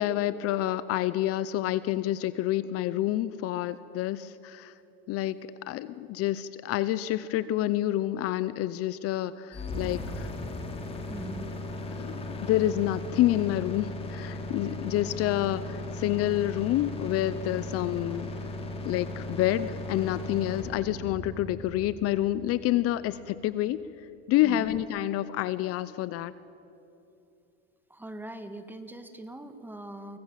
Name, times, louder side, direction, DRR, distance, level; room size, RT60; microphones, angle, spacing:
voice 1, 0.0-4.7 5.1-10.3 12.0-18.3 18.8-23.8 24.3-26.3, left 14 dB, 50° left, 16 dB, 0.7 m, -28 dB
sound 1, 9.5-23.5, left 1 dB, 20° left, 3.0 m, -37 dB
voice 2, 11.1-11.6 24.4-24.7 27.9-30.2, right 1 dB, 5° right, 9 dB, 1.5 m, -41 dB
24.5 x 17.0 x 7.5 m, 2.8 s
supercardioid pair, 125°, 30 cm